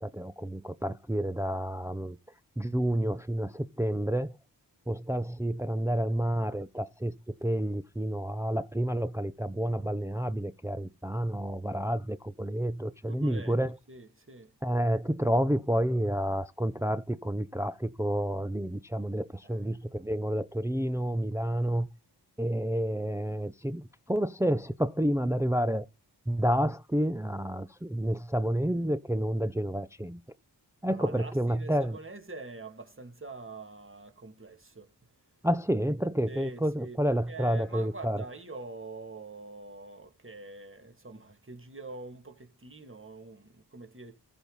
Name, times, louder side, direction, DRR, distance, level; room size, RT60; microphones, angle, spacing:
voice 1, 0.0-2.2 2.6-4.3 4.9-7.1 7.4-13.8 14.6-21.9 22.4-23.8 24.1-25.8 26.3-30.2 30.8-32.0 35.4-38.2, equal, 5° right, 0.6 m, -29 dB
voice 2, 13.1-13.6 13.9-14.5 19.4-19.6 30.9-34.9 36.3-44.2, right 3 dB, 30° right, 2.7 m, -45 dB
14.0 x 5.4 x 4.1 m
cardioid pair, 40°, 41 cm